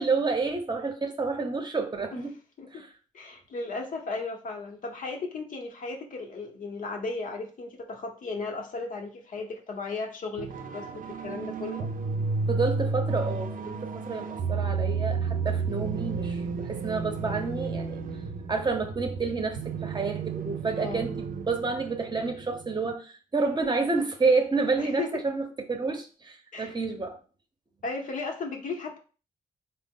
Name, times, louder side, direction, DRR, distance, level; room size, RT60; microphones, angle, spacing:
voice 1, 0.0-2.3 2.7-2.9 12.5-18.0 18.5-27.2, right 4 dB, 30° right, 0.7 m, -29 dB
voice 2, 3.1-11.9 20.8-21.1 24.8-25.1 26.5-26.7 27.8-29.0, left 3 dB, 65° left, 0.8 m, -35 dB
sound 1, 10.4-22.9, right 4 dB, 70° right, 0.4 m, -32 dB
3.8 x 2.0 x 3.5 m
cardioid pair, 70°, 14 cm